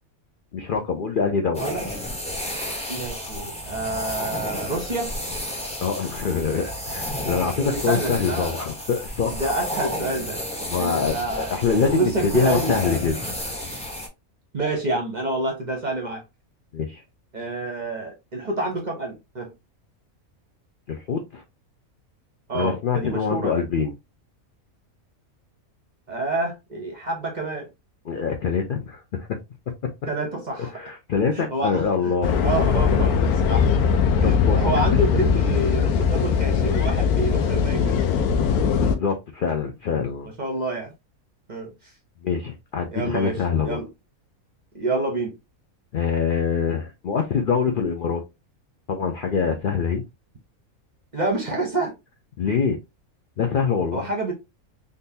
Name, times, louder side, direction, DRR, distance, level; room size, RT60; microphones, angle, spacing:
voice 1, 0.5-1.7 5.8-9.5 10.7-13.2 16.7-17.0 20.9-21.4 22.5-23.9 28.1-29.4 30.7-32.3 34.2-34.7 38.8-40.3 42.2-43.8 45.9-48.2 48.9-50.0 52.4-52.8 53.4-54.1, left 6 dB, 65° left, 0.5 m, -24 dB
sound 1, 1.5-14.1, equal, 5° left, 0.5 m, -32 dB
voice 2, 2.9-5.1 7.6-8.7 9.3-10.4 10.8-12.8 14.5-16.2 17.3-19.5 22.5-23.6 26.1-27.7 30.1-30.7 31.3-33.1 33.5-33.7 34.2-38.0 40.4-40.9 41.5-41.9 42.9-43.9 44.7-45.3 51.1-51.9 53.9-54.3, right 2 dB, 40° right, 0.6 m, -28 dB
sound 2, 32.2-39.0, left 6 dB, 85° left, 1.1 m, -20 dB
3.7 x 2.6 x 2.7 m
omnidirectional pair, 1.5 m